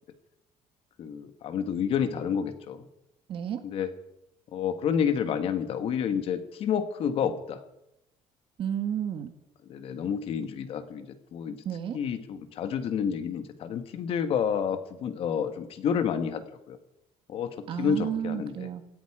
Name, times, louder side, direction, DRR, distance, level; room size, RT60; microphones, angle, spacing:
voice 1, 1.0-2.9 3.6-3.9 4.5-7.6 9.7-11.6 11.9-16.8 17.3-18.7, left 7 dB, 50° left, 10 dB, 1.6 m, -29 dB
voice 2, 3.3-3.6 8.6-9.3 11.7-12.0 17.7-18.8, right 9 dB, 45° right, 8 dB, 1.8 m, -31 dB
17.5 x 15.5 x 4.9 m, 0.86 s
cardioid pair, 175°, 12 cm